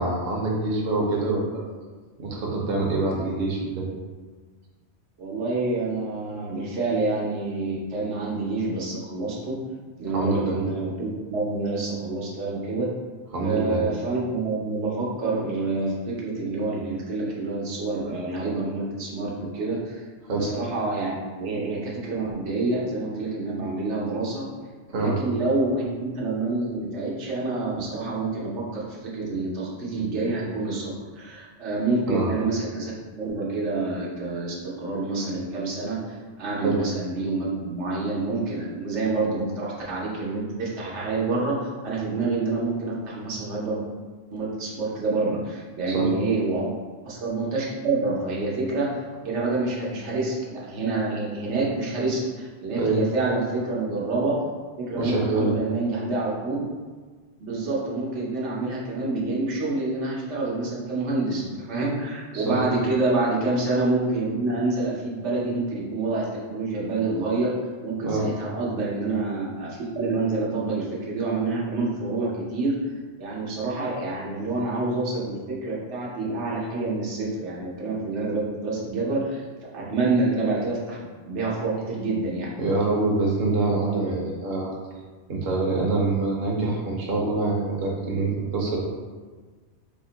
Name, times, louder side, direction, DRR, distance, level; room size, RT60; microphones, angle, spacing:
voice 1, 0.0-1.6 2.2-3.9 10.1-10.6 13.3-13.8 20.2-20.5 24.9-25.1 32.1-32.3 36.6-36.8 45.9-46.1 52.8-53.0 55.0-55.6 62.3-62.6 68.0-68.2 82.6-84.7 85.3-88.8, right 3 dB, 60° right, -3 dB, 0.9 m, -25 dB
voice 2, 5.2-9.6 10.0-12.9 13.4-20.0 20.3-24.5 24.9-43.8 44.3-46.7 47.0-49.0 49.2-54.4 54.8-56.6 57.4-67.5 67.8-72.8 73.2-79.4 79.7-81.0 81.2-82.5, right 3 dB, 90° right, -5 dB, 1.1 m, -27 dB
3.4 x 2.1 x 3.8 m, 1.4 s
omnidirectional pair, 1.2 m